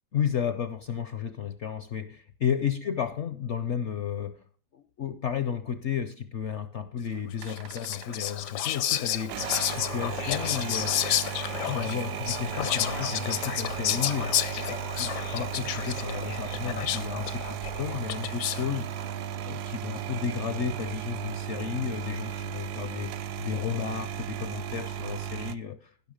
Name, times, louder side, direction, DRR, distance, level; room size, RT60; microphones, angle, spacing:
voice 1, 0.1-4.4 4.7-11.0 11.3-14.4 14.7-19.2 19.5-23.1 23.4-25.9, left 8 dB, 65° left, 0.7 m, -33 dB
Whispering, 7.4-18.7, left 12 dB, 80° left, 1.3 m, -31 dB
sound 1, 7.4-8.5 9.2-25.5, right 8 dB, 75° right, 1.2 m, -35 dB
16.5 x 6.0 x 4.9 m
omnidirectional pair, 1.8 m